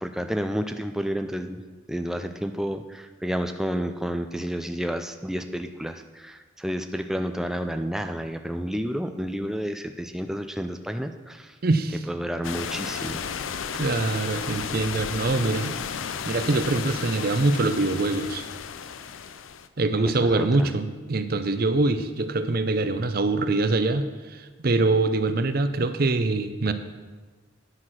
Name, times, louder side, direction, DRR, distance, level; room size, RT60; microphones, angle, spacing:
voice 1, 0.0-1.6 1.9-11.6 12.1-13.2 20.0-20.7, equal, ahead, 7 dB, 0.3 m, -30 dB
voice 2, 11.6-12.0 13.7-15.7 16.2-18.5 19.8-24.0 24.3-26.7, right 2 dB, 50° right, 10 dB, 0.6 m, -24 dB
sound 1, 12.4-19.7, left 7 dB, 75° left, 0.5 m, -33 dB
9.7 x 5.9 x 6.2 m, 1.4 s
head